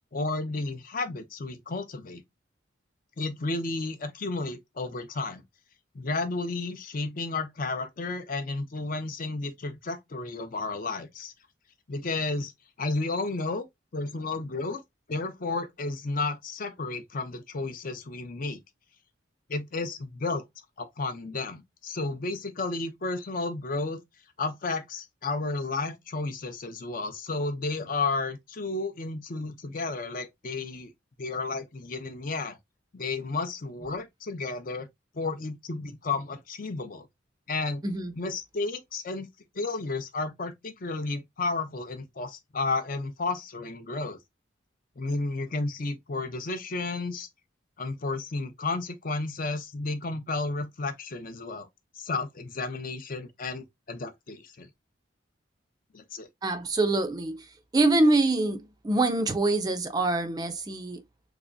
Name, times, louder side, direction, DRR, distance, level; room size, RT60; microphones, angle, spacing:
voice 1, 0.1-2.2 3.2-5.4 5.9-11.3 11.9-12.5 12.8-13.7 13.9-14.8 15.1-18.6 19.5-20.4 20.8-24.0 24.4-30.9 31.2-32.6 32.9-34.9 35.1-37.1 37.5-37.8 38.2-39.3 39.5-44.2 45.0-47.3 47.8-51.7 52.0-54.7 55.9-56.3, left 3 dB, 45° left, 0.5 m, -32 dB
voice 2, 56.4-57.5 57.7-61.0, right 2 dB, 20° right, 0.4 m, -25 dB
3.4 x 2.9 x 2.6 m
head